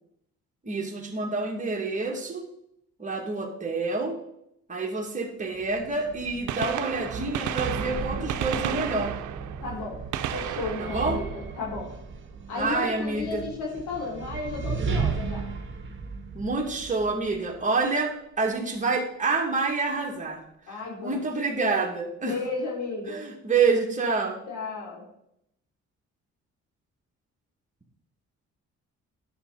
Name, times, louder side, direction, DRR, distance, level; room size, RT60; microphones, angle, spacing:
voice 1, 0.6-2.4 3.0-4.2 4.7-9.1 10.8-11.2 12.6-13.4 16.3-20.4 21.0-22.3 23.1-24.4, right 3 dB, 25° right, 0 dB, 2.3 m, -27 dB
sound 1, 5.5-17.7, right 5 dB, 40° right, 1.5 m, -35 dB
Gunshot gunfire, 5.8-5.9 6.3-12.2 14.1-14.3 15.3-15.4 17.0-17.1 18.5-18.6 18.7-18.8, right 10 dB, 75° right, 0.7 m, -34 dB
voice 2, 9.6-10.0 10.3-11.9 12.5-15.5 20.7-21.3 22.2-23.3 24.5-25.0, left 3 dB, 80° left, -2 dB, 3.5 m, -33 dB
10.0 x 7.5 x 4.1 m, 0.77 s
cardioid pair, 90°, 30 cm